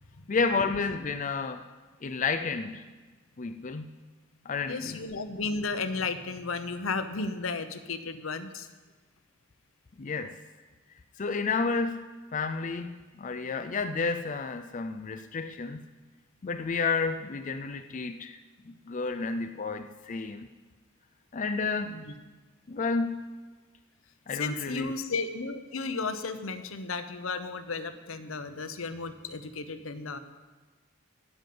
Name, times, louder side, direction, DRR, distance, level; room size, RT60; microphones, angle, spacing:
voice 1, 0.3-1.6 2.0-2.8 3.4-3.9 4.4-5.0 10.0-10.4 11.2-12.1 12.3-15.8 16.4-18.4 18.6-20.5 21.3-22.0 22.7-23.2 24.3-24.9, left 4 dB, 40° left, 7 dB, 0.5 m, -31 dB
voice 2, 4.7-8.7 21.8-22.1 24.3-30.2, left 4 dB, 75° left, 10 dB, 0.8 m, -34 dB
15.5 x 5.3 x 9.3 m, 1.3 s
head